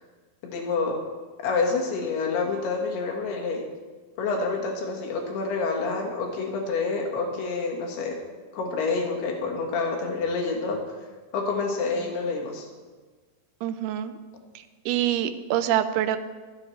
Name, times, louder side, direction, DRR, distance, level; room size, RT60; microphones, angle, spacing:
voice 1, 0.4-1.0 1.4-3.6 4.2-8.2 8.5-10.8 11.3-12.7, left 4 dB, 75° left, 0 dB, 3.7 m, -28 dB
voice 2, 13.6-14.1 14.9-16.2, right 11 dB, 80° right, 11 dB, 2.5 m, -25 dB
23.0 x 8.6 x 3.3 m, 1.4 s
omnidirectional pair, 4.7 m